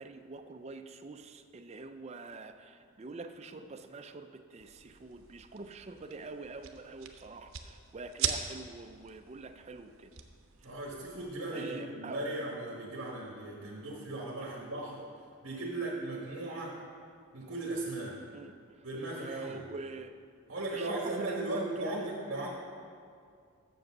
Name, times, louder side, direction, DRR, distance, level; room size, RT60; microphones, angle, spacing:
voice 1, 0.0-10.1 11.5-12.3 14.4-14.5 18.3-18.9 19.2-20.1 20.7-22.1, right 3 dB, 30° right, 7 dB, 0.4 m, -45 dB
sound 1, 4.6-11.3, right 8 dB, 80° right, 0.7 m, -41 dB
voice 2, 10.6-15.1 15.4-16.8 17.3-18.2 18.8-19.6 20.5-22.5, right 2 dB, 65° right, -4 dB, 1.3 m, -37 dB
7.8 x 6.7 x 6.1 m, 2.3 s
head